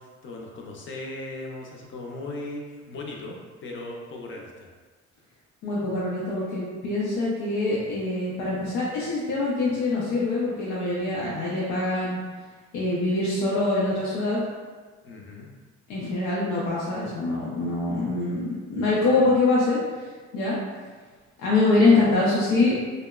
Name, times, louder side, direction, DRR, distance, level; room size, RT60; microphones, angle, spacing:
voice 1, 0.0-4.7 15.0-15.5, left 2 dB, 40° left, -1 dB, 0.5 m, -38 dB
voice 2, 5.6-12.2 12.7-14.4 15.9-19.8 20.3-20.6 21.4-22.8, left 2 dB, 85° left, -7 dB, 0.5 m, -24 dB
2.8 x 2.0 x 2.3 m, 1.5 s
cardioid pair, 90°, 30 cm